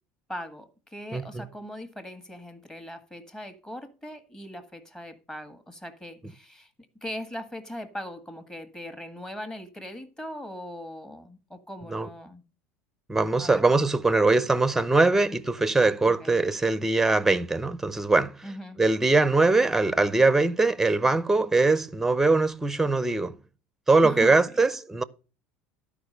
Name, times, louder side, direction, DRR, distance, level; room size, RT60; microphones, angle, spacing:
voice 1, 0.3-6.7 7.0-12.4 13.4-13.7 16.0-16.4 18.4-18.8 24.0-24.4, left 1 dB, 10° left, 1.7 m, -40 dB
voice 2, 1.1-1.5 11.9-12.1 13.1-18.4 18.8-23.4 23.9-25.0, right 3 dB, 5° right, 0.7 m, -22 dB
12.0 x 5.1 x 6.6 m
supercardioid pair, 110°, 5 cm